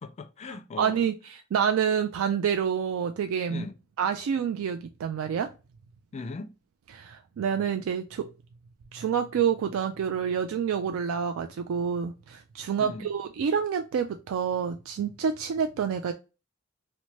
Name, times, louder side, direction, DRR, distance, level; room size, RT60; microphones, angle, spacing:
voice 1, 0.0-1.0 3.5-3.8 6.1-6.5 12.8-13.1, left 3 dB, 35° left, 0.3 m, -39 dB
voice 2, 0.8-3.7 4.0-5.5 6.9-8.3 8.9-16.1, right 7 dB, 85° right, 0.3 m, -28 dB
2.8 x 2.1 x 3.0 m
head